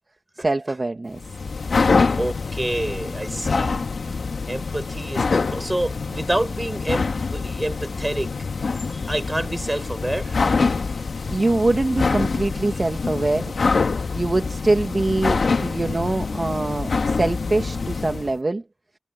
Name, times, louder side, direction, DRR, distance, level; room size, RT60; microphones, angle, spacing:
voice 1, 0.4-1.2 10.8-13.6 14.2-18.6, right 2 dB, 40° right, 2.4 m, -24 dB
sound 1, 1.1-18.3, left 4 dB, 75° left, 2.1 m, -25 dB
voice 2, 2.2-3.9 4.5-8.3 8.9-10.4, right 1 dB, 20° right, 6.8 m, -28 dB
cardioid pair, 40°, 0 cm